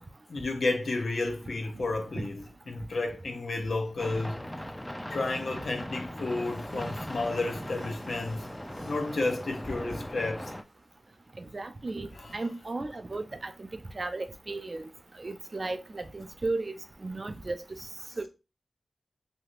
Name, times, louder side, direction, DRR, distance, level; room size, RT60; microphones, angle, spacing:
voice 1, 0.3-2.4 2.7-4.4 5.1-8.5 8.8-10.5 12.2-12.3, left 2 dB, 80° left, 0.6 m, -31 dB
sound 1, 4.0-10.6, equal, 15° left, 0.4 m, -39 dB
voice 2, 11.4-14.9 15.2-16.7 17.0-17.9 18.2-18.3, right 3 dB, 55° right, 0.4 m, -35 dB
3.2 x 2.7 x 2.4 m
cardioid pair, 45°, 0 cm